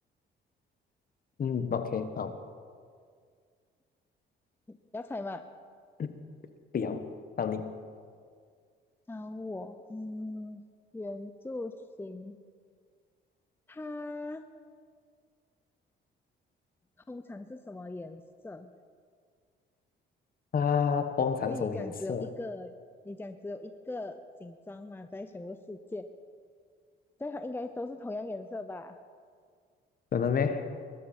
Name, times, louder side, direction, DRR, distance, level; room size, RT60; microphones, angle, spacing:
voice 1, 1.4-2.3 6.0-6.2 6.7-7.0 7.4-7.7 20.5-22.3 30.1-30.7, left 6 dB, 45° left, 9 dB, 1.2 m, -29 dB
voice 2, 4.7-5.4 9.1-10.6 10.9-12.4 13.7-14.5 17.1-18.7 21.5-22.7 23.0-26.1 27.2-29.0, left 2 dB, 10° left, 9 dB, 0.6 m, -39 dB
21.0 x 12.5 x 4.3 m, 2.1 s
cardioid pair, 90°, 20 cm